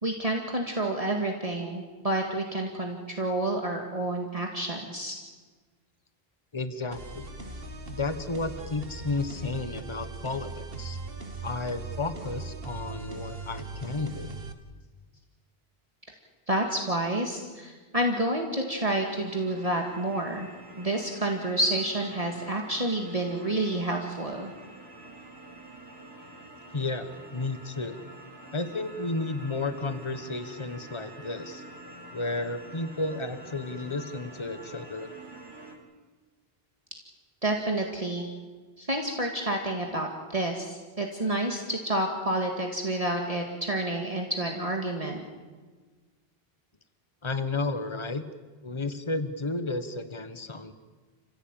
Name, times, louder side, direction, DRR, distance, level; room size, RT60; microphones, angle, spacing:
voice 1, 0.0-5.2 16.5-20.5 20.8-24.5 37.4-38.3 38.8-45.2, right 1 dB, 35° right, 1 dB, 2.2 m, -29 dB
voice 2, 6.5-7.3 7.9-11.0 11.4-14.3 26.7-28.0 28.5-31.6 32.1-35.1 47.2-48.2 48.6-50.7, left 3 dB, 30° left, 10 dB, 1.4 m, -32 dB
sound 1, 6.9-14.5, right 3 dB, 70° right, 1.8 m, -39 dB
sound 2, 19.0-35.7, right 2 dB, 90° right, 5.0 m, -47 dB
29.5 x 16.0 x 9.1 m, 1.4 s
omnidirectional pair, 1.0 m